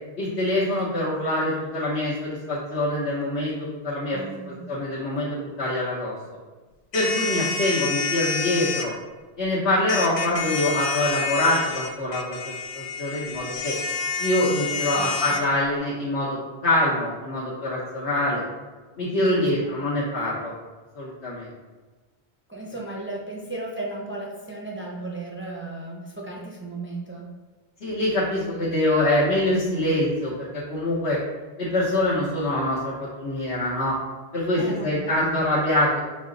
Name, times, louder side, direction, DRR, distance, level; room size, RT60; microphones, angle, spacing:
voice 1, 0.2-6.1 6.9-8.9 9.4-13.7 14.2-18.4 19.0-20.5 20.9-21.5 27.8-31.2 31.6-34.0 34.3-36.0, left 1 dB, 90° left, -8 dB, 1.2 m, -25 dB
voice 2, 4.1-4.6 14.7-15.5 19.2-19.5 22.5-27.3 34.4-35.3, right 2 dB, 20° right, -3 dB, 0.3 m, -36 dB
sound 1, 6.9-8.9 9.9-15.4, left 5 dB, 60° left, 0.4 m, -29 dB
5.4 x 2.0 x 3.7 m, 1.3 s
omnidirectional pair, 1.1 m